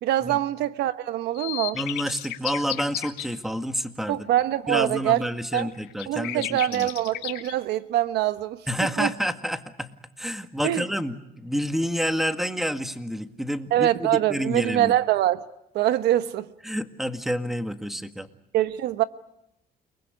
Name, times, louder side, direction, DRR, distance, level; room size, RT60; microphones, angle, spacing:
voice 1, 0.0-1.8 4.1-5.2 5.5-5.7 6.1-8.6 9.0-9.1 10.6-10.8 13.7-15.4 15.7-16.5 18.5-19.0, right 13 dB, 80° right, 1.1 m, -24 dB
sound 1, 1.3-3.2 5.1-5.2 5.5-7.5, left 15 dB, 90° left, 2.5 m, -33 dB
voice 2, 1.7-4.3 4.7-6.9 8.7-9.9 10.2-15.0 16.6-18.3, equal, ahead, 1.8 m, -29 dB
29.5 x 20.5 x 9.6 m
cardioid pair, 110°, 17 cm